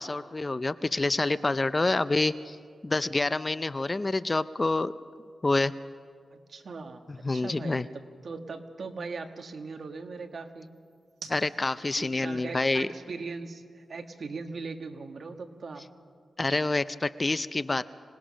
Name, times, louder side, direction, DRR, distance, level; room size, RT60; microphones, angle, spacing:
voice 1, 0.0-2.6 2.8-4.9 5.4-5.7 7.2-7.9 11.3-12.9 16.4-17.8, left 2 dB, 25° left, 14 dB, 0.4 m, -27 dB
sound 1, 1.4-15.6, right 5 dB, 80° right, 2.1 m, -58 dB
voice 2, 6.3-7.9 8.2-10.7 12.0-15.8, right 4 dB, 55° right, 6 dB, 1.4 m, -39 dB
25.5 x 19.0 x 6.3 m, 2.1 s
wide cardioid pair, 110°, 0 cm